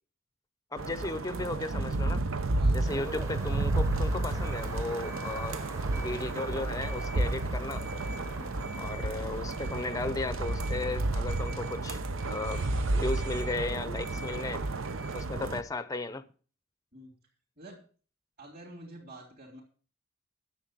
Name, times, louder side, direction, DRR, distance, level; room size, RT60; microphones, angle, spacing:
voice 1, 0.7-2.2 2.7-5.6 6.0-7.8 8.8-12.0 12.3-14.6 15.1-16.3, left 2 dB, 15° left, 0.6 m, -35 dB
sound 1, 0.8-15.6, right 2 dB, 90° right, 0.8 m, -31 dB
sound 2, 2.8-10.3, right 2 dB, 15° right, 0.9 m, -46 dB
sound 3, 4.4-15.2, right 2 dB, 70° right, 1.1 m, -46 dB
voice 2, 18.4-19.6, right 1 dB, 50° right, 3.4 m, -48 dB
10.5 x 7.4 x 7.5 m
head